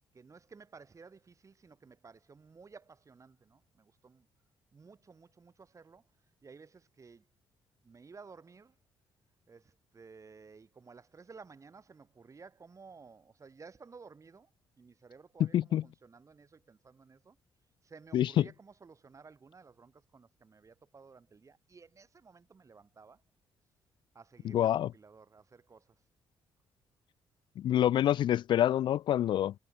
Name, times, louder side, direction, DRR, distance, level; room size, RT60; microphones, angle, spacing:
voice 1, 0.1-4.3 4.7-6.1 6.4-7.3 7.8-8.8 9.5-14.5 14.8-17.4 17.8-23.2 24.1-26.0, right 5 dB, 35° right, 7.5 m, -55 dB
voice 2, 15.4-15.8 18.1-18.4 24.5-24.9 27.6-29.5, left 11 dB, 60° left, 0.3 m, -26 dB
cardioid pair, 75°, 9 cm